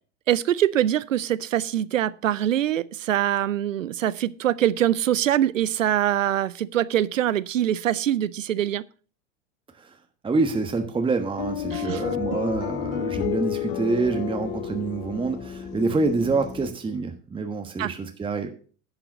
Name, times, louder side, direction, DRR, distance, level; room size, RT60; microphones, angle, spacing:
voice 1, 0.3-8.8 11.7-12.0 17.8-17.9, right 11 dB, 90° right, 0.6 m, -23 dB
voice 2, 10.2-18.5, right 3 dB, 15° right, 1.3 m, -26 dB
sound 1, 11.4-16.7, left 11 dB, 50° left, 1.3 m, -31 dB
11.0 x 5.9 x 6.0 m
hypercardioid pair, 95°, 37 cm